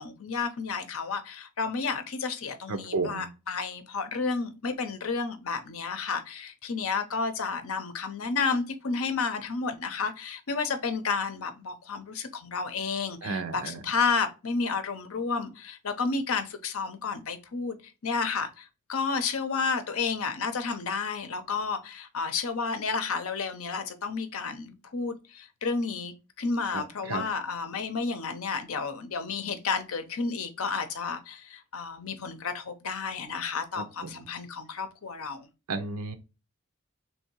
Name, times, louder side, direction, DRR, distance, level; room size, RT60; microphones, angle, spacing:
voice 1, 0.0-17.8 18.0-35.5, left 4 dB, 75° left, 0.7 m, -31 dB
voice 2, 2.7-3.2 13.2-13.8 26.7-27.2 33.8-34.3 35.7-36.1, right 3 dB, 80° right, 0.7 m, -33 dB
3.4 x 2.7 x 4.4 m
head